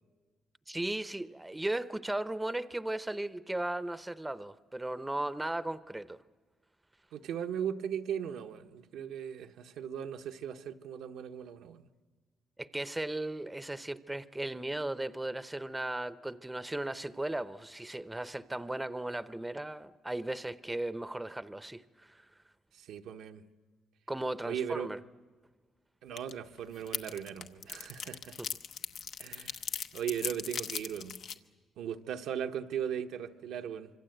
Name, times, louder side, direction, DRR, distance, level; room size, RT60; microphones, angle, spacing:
voice 1, 0.7-6.2 12.6-22.2 24.1-25.0 28.4-28.5, right 1 dB, 10° right, 0.7 m, -36 dB
voice 2, 7.1-11.8 22.7-23.4 24.4-24.9 26.0-28.3 29.2-29.6 29.9-31.2 31.8-33.9, right 8 dB, 85° right, 1.0 m, -38 dB
sound 1, 26.2-26.3 26.6-31.3, left 7 dB, 70° left, 0.9 m, -38 dB
26.0 x 24.5 x 7.9 m
cardioid pair, 90°, 0 cm